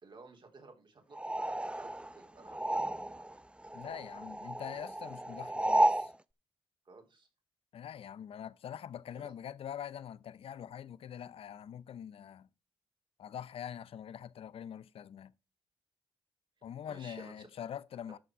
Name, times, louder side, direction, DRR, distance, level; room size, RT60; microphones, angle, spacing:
voice 1, 0.0-3.3 6.9-7.3 9.1-9.3 16.9-17.5, right 3 dB, 55° right, 3.7 m, -55 dB
sound 1, 1.1-3.4 3.6-6.1, right 1 dB, 10° right, 0.7 m, -32 dB
voice 2, 3.7-6.1 7.7-12.5 13.2-15.3 16.6-18.2, left 9 dB, 75° left, 0.6 m, -44 dB
13.0 x 5.8 x 4.7 m
supercardioid pair, 50°, 10 cm